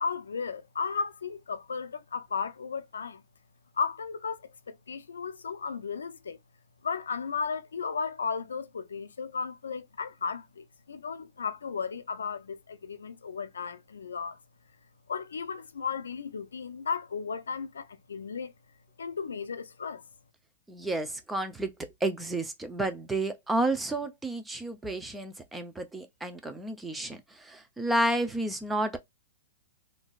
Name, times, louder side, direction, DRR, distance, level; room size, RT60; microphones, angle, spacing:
voice 1, 0.0-3.2 3.8-6.4 6.8-14.4 15.1-18.5 19.0-20.0, left 5 dB, 90° left, 0.5 m, -35 dB
voice 2, 20.7-21.7 22.0-29.0, right 1 dB, 10° right, 0.6 m, -31 dB
3.7 x 2.6 x 2.4 m
hypercardioid pair, 130°, 0 cm